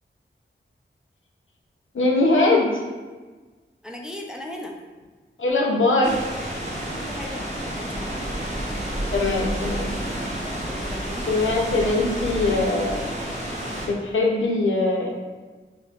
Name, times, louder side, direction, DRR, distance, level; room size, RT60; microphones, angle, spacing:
voice 1, 1.9-2.7 5.4-6.1 9.1-10.0 11.3-13.1 13.8-15.1, left 2 dB, 75° left, -1 dB, 0.6 m, -21 dB
voice 2, 3.8-4.7 7.0-8.3 10.7-11.3, left 1 dB, 5° right, 0 dB, 0.4 m, -37 dB
sound 1, 6.0-13.9, right 1 dB, 35° right, 0.9 m, -30 dB
4.7 x 2.1 x 2.3 m, 1.3 s
wide cardioid pair, 65°, 21 cm